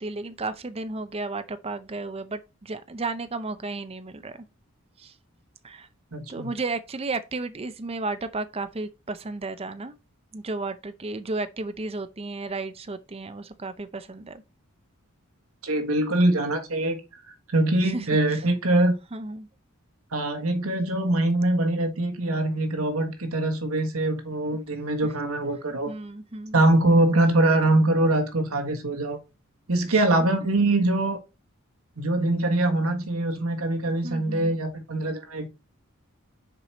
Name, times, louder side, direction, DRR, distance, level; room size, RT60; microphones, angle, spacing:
voice 1, 0.0-4.4 5.0-5.2 5.6-5.9 6.3-10.0 10.3-14.4 17.8-18.4 19.1-19.5 25.9-26.6 29.9-30.0 34.0-34.5, right 3 dB, 25° right, 0.6 m, -33 dB
voice 2, 6.1-6.5 15.6-17.0 17.5-18.9 20.1-25.9 26.5-29.2 29.7-31.2 32.0-35.5, right 2 dB, 80° right, 1.5 m, -23 dB
6.8 x 4.8 x 4.1 m
head